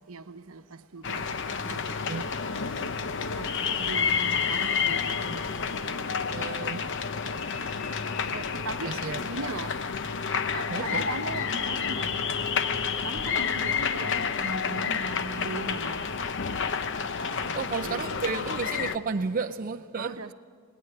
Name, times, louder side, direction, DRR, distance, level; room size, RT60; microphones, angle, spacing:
voice 1, 0.1-2.3 3.4-6.9 8.3-9.7 10.5-12.1 13.0-16.1 17.2-18.2 20.0-20.3, right 3 dB, 75° right, 0.9 m, -39 dB
sound 1, 1.0-19.0, left 6 dB, 60° left, 0.8 m, -30 dB
voice 2, 6.3-6.9 8.8-9.2 10.7-11.1 17.5-20.2, right 4 dB, 40° right, 0.5 m, -32 dB
20.5 x 18.5 x 8.9 m
head